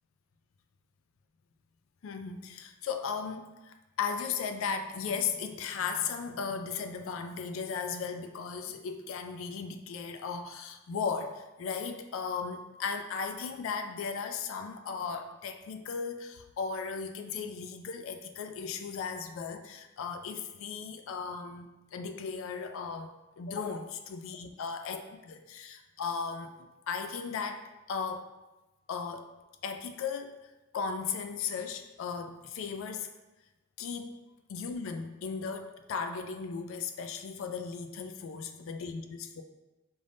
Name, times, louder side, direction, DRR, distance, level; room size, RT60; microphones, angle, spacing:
voice 1, 2.0-28.3 28.9-29.3 29.6-30.4 30.7-33.1 33.8-34.2 34.5-39.4, left 5 dB, 75° left, 7 dB, 0.3 m, -36 dB
5.2 x 3.4 x 2.5 m, 1.1 s
head